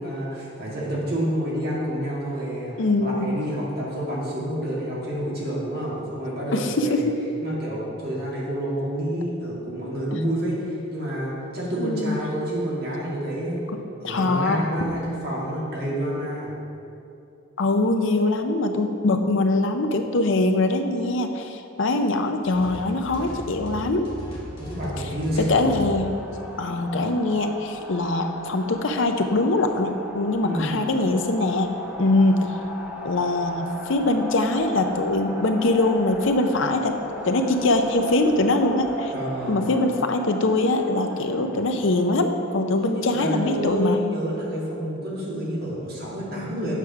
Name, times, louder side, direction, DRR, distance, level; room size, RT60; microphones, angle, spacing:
voice 1, 0.0-7.1 7.4-13.6 14.0-16.5 24.6-25.7 30.4-30.7 39.1-39.6 42.8-46.8, equal, 50° right, -6 dB, 2.1 m, -28 dB
voice 2, 2.8-3.3 6.5-7.2 10.1-10.2 11.8-12.2 13.7-13.8 14.0-14.6 17.6-24.1 25.4-26.1 26.6-32.5 33.0-36.9 37.2-39.1 39.5-44.0, left 2 dB, 60° left, 6 dB, 0.6 m, -23 dB
sound 1, 22.4-27.4, equal, 25° left, 1.4 m, -38 dB
sound 2, 25.3-43.0, equal, 10° right, 1.0 m, -37 dB
8.2 x 4.9 x 5.8 m, 2.7 s
head